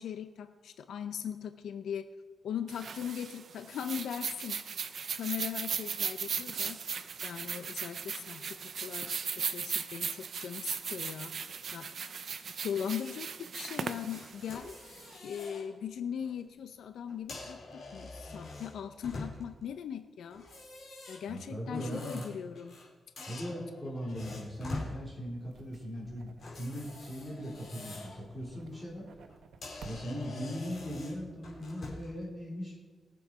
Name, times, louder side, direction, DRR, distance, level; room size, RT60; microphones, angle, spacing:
voice 1, 0.0-2.1 2.4-4.6 5.1-6.8 7.2-11.3 11.7-11.9 12.6-14.7 15.2-20.4 21.1-22.8, left 8 dB, 85° left, 9 dB, 0.6 m, -39 dB
sound 1, 2.7-15.1, right 6 dB, 50° right, 0.7 m, -37 dB
sound 2, 14.1-15.6 16.1-16.3 17.1-19.6 20.3-22.9 23.2-24.9 26.4-28.2 28.6-28.8 29.3-29.4 29.6-32.1, left 2 dB, 45° left, 4.1 m, -45 dB
voice 2, 21.3-22.2 23.3-29.0 29.8-32.8, equal, 10° left, -5 dB, 4.1 m, -39 dB
sound 3, 25.4-30.6, right 5 dB, 70° right, 1.0 m, -55 dB
20.5 x 7.8 x 4.9 m, 1.4 s
wide cardioid pair, 155°, 0 cm